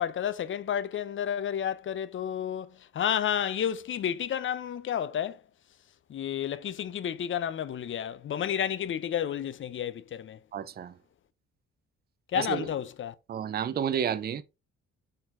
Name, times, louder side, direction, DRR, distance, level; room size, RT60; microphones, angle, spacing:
voice 1, 0.0-2.7 2.9-5.4 6.1-10.4 12.3-13.1, left 9 dB, 45° left, 0.4 m, -31 dB
voice 2, 10.5-10.9 12.3-12.7 13.3-14.4, right 8 dB, 35° right, 0.4 m, -31 dB
4.3 x 3.9 x 2.4 m
cardioid pair, 90°, 30 cm